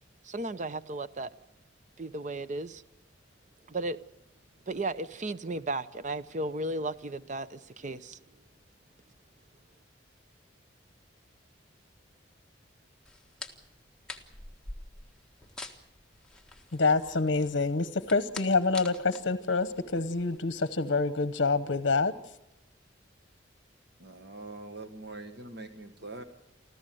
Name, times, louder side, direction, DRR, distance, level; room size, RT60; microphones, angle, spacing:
voice 1, 0.2-1.3 2.0-2.8 3.7-4.0 4.7-8.2, right 2 dB, 40° right, 0.7 m, -34 dB
sound 1, 13.0-20.4, left 2 dB, 5° left, 1.5 m, -46 dB
voice 2, 16.7-22.1, left 3 dB, 65° left, 0.9 m, -27 dB
voice 3, 24.0-26.2, right 2 dB, 60° right, 1.4 m, -43 dB
25.5 x 14.5 x 7.7 m
head